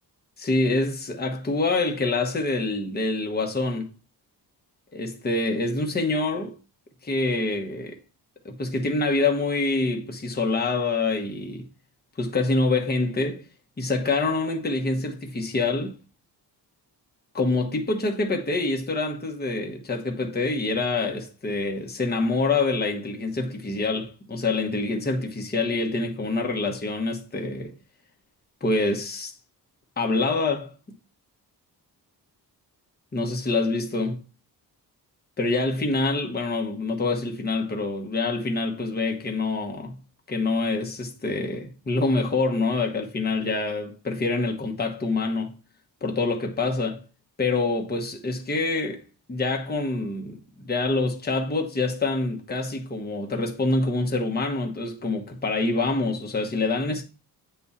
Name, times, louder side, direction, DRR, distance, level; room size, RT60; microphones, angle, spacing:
voice 1, 0.4-3.9 4.9-6.5 7.0-8.0 8.4-11.7 12.2-13.4 13.8-16.0 17.3-27.7 28.6-29.3 30.0-30.7 33.1-34.2 35.4-40.0 40.3-45.6 46.0-47.0 47.4-49.0 49.3-57.0, left 3 dB, 25° left, 1.1 m, -26 dB
8.5 x 3.7 x 4.1 m
wide cardioid pair, 130°, 39 cm